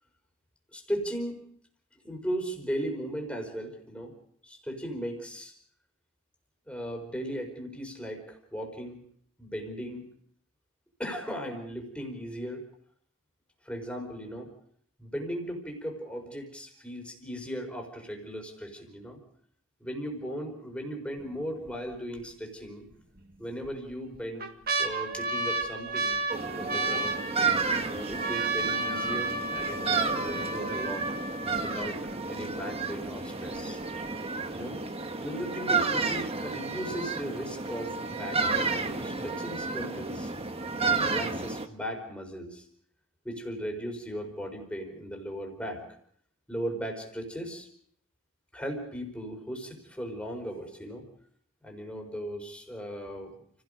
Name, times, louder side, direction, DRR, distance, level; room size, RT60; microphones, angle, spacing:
voice 1, 0.7-1.4 2.0-4.1 4.4-5.5 6.6-9.0 9.4-10.1 11.0-12.6 13.6-14.5 15.0-19.2 19.8-22.9 23.4-24.5 24.8-26.2 26.6-27.2 27.8-31.1 31.6-33.8 34.5-34.8 35.2-40.3 40.8-42.7 43.2-45.8 46.5-47.7 48.5-51.0 51.6-53.4, equal, 5° left, 3 dB, 4.6 m, -37 dB
sound 1, 21.2-21.7 22.2-22.3 23.2-23.7 24.1-32.1 32.8-32.9 33.1-33.6 34.1-34.2, right 3 dB, 50° right, 1.8 m, -32 dB
sound 2, 26.3-41.7, right 4 dB, 30° right, 1.3 m, -31 dB
30.0 x 17.0 x 5.1 m, 0.63 s
head